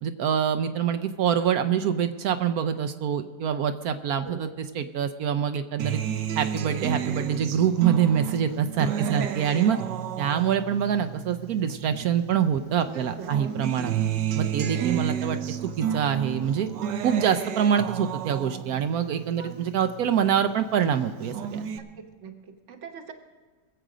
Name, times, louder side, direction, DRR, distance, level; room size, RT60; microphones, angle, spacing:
voice 1, 0.0-6.0 6.4-9.8 10.2-13.9 14.4-16.7 17.0-21.6, right 8 dB, 70° right, 9 dB, 1.0 m, -25 dB
Acoustic guitar, 5.8-12.4 12.8-20.4 20.8-21.8, right 9 dB, 85° right, 1.4 m, -32 dB
voice 2, 8.9-9.7 12.9-13.3 19.4-19.6 22.0-23.1, right 6 dB, 50° right, 5 dB, 1.3 m, -41 dB
22.0 x 7.9 x 5.0 m, 1.4 s
omnidirectional pair, 1.8 m